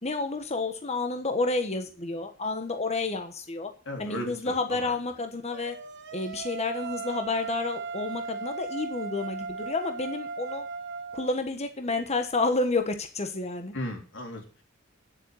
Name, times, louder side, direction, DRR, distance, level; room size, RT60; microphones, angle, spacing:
voice 1, 0.0-3.7 4.0-5.8 6.1-10.7 11.1-13.7, left 3 dB, 35° left, 6 dB, 1.3 m, -30 dB
voice 2, 3.9-5.0 13.7-14.6, left 1 dB, 65° left, 2 dB, 4.1 m, -36 dB
sound 1, 5.5-11.3, right 4 dB, 60° right, 1.4 m, -37 dB
9.9 x 8.3 x 7.8 m, 0.38 s
head